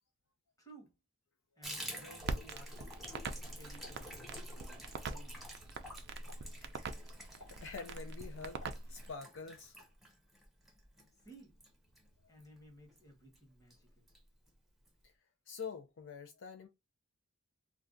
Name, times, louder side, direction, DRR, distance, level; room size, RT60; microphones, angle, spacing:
voice 1, 0.6-0.9 1.6-3.0 3.5-5.8 11.1-11.5 12.3-14.1, right 1 dB, 15° left, 1.1 m, -58 dB
Water tap faucet / Bathtub (filling or washing), 1.6-12.6 12.9-13.0 13.3-13.4 13.7-14.2 14.5-14.6 14.8-14.9, equal, ahead, 0.7 m, -50 dB
Crackle, 2.2-9.2, right 3 dB, 50° right, 0.4 m, -44 dB
Explosion, 3.8-4.7 5.0-5.4 6.3-6.6 7.4-7.8 8.6-9.3 9.8-10.0, left 2 dB, 85° left, 1.5 m, -60 dB
voice 2, 7.3-9.8 15.0-15.1 15.5-16.7, left 5 dB, 60° left, 0.5 m, -46 dB
2.5 x 2.2 x 3.7 m
head